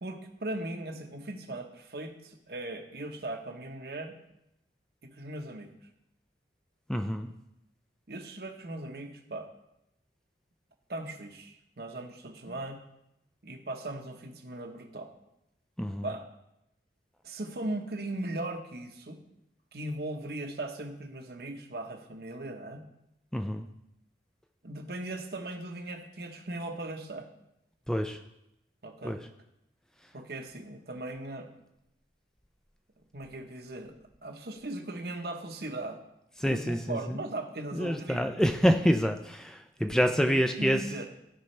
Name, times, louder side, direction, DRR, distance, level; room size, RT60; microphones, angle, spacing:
voice 1, 0.0-4.2 5.0-5.7 8.1-9.5 10.9-12.8 13.4-15.1 16.0-16.3 17.2-19.2 19.7-22.8 24.6-27.3 28.8-29.2 30.1-31.5 33.1-33.9 34.2-36.0 36.4-38.3 39.8-41.1, right 2 dB, 60° right, 4 dB, 1.0 m, -38 dB
voice 2, 6.9-7.3 15.8-16.1 23.3-23.7 27.9-28.2 29.0-29.2 36.4-37.2 37.7-40.8, equal, 5° left, 6 dB, 0.3 m, -27 dB
15.0 x 5.5 x 3.2 m, 0.85 s
head